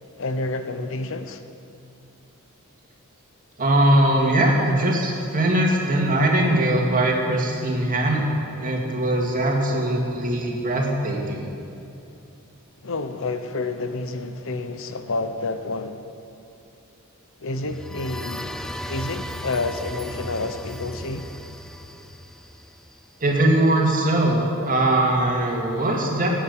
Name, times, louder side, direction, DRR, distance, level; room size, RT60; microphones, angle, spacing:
voice 1, 0.2-1.4 12.8-16.1 17.4-18.5 18.9-21.3, left 3 dB, 65° left, 0.8 m, -29 dB
voice 2, 3.6-8.3 8.6-11.5 23.2-26.3, right 1 dB, 40° right, 2.3 m, -21 dB
sound 1, 17.6-23.3, equal, ahead, 0.5 m, -36 dB
15.5 x 9.1 x 8.2 m
head